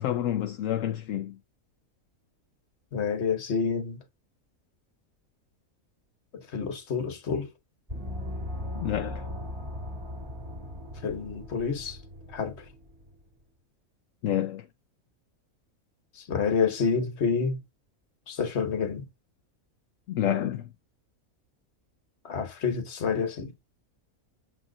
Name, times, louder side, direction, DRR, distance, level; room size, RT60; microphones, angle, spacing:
voice 1, 0.0-1.4 8.7-9.3 14.2-14.7 20.1-20.7, left 11 dB, 70° left, 1.0 m, -29 dB
voice 2, 2.9-4.0 6.3-7.5 11.0-12.0 12.3-12.6 16.2-17.6 18.3-19.1 22.2-23.5, left 5 dB, 50° left, 1.4 m, -28 dB
Gong, 7.9-13.1, left 1 dB, 25° right, 2.0 m, -38 dB
7.4 x 3.3 x 3.8 m
omnidirectional pair, 1.5 m